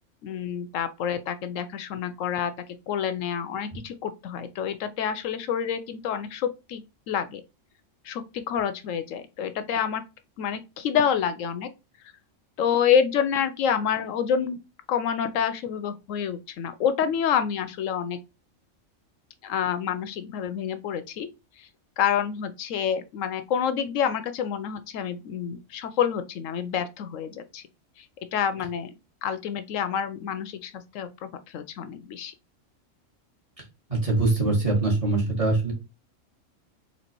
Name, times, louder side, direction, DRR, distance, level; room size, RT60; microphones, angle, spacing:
voice 1, 0.2-2.5 2.9-7.4 8.0-10.0 10.4-11.7 12.6-14.6 14.9-18.2 19.4-21.3 21.6-21.7 22.0-27.6 28.0-28.1 28.3-28.9 29.2-32.3, left 8 dB, 80° left, 0.9 m, -28 dB
voice 2, 33.9-35.7, right 2 dB, 25° right, 1.9 m, -23 dB
4.1 x 2.7 x 4.4 m
omnidirectional pair, 1.3 m